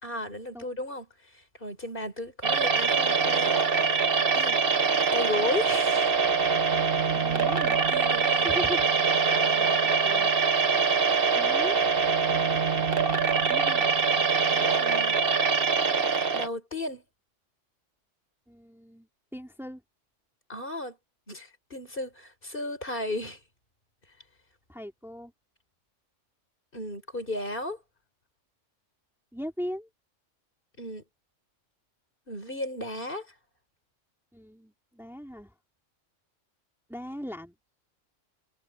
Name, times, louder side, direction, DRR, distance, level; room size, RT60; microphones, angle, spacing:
voice 1, 0.0-3.6 4.3-4.6 5.1-6.2 7.9-8.6 14.5-15.2 16.3-17.0 20.5-21.0 21.3-23.4 26.7-27.8 30.8-31.0 32.3-33.3, left 1 dB, 45° left, 4.8 m, -35 dB
sound 1, 2.4-16.5, right 5 dB, 50° right, 1.6 m, -24 dB
voice 2, 7.1-7.8 8.4-8.9 9.5-10.3 11.4-11.8 13.5-13.9 18.5-19.8 24.7-25.3 29.3-29.9 34.3-35.5 36.9-37.6, equal, ahead, 2.8 m, -39 dB
omnidirectional pair, 1.3 m